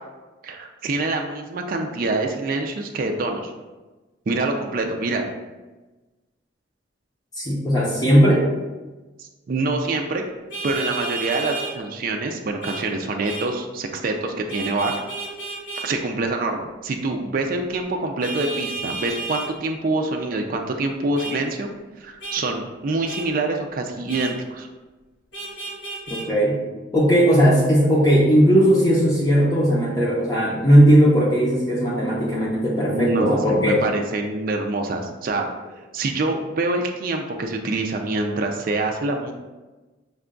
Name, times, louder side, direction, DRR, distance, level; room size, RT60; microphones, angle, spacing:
voice 1, 0.4-3.5 4.3-5.3 9.2-10.2 10.6-14.9 15.8-21.7 22.0-24.7 32.9-35.5 35.9-39.3, right 2 dB, 45° right, 3 dB, 0.4 m, -25 dB
voice 2, 7.4-8.5 26.1-26.6 26.9-33.8, equal, 20° left, -5 dB, 0.6 m, -17 dB
Vehicle horn car horn honking, 10.5-11.7 12.6-12.8 13.2-13.5 14.5-15.9 18.2-19.5 21.2-21.4 22.2-22.4 23.1-23.3 24.1-24.3 25.3-26.3, right 3 dB, 65° left, 1.3 m, -32 dB
5.3 x 2.3 x 3.7 m, 1.2 s
head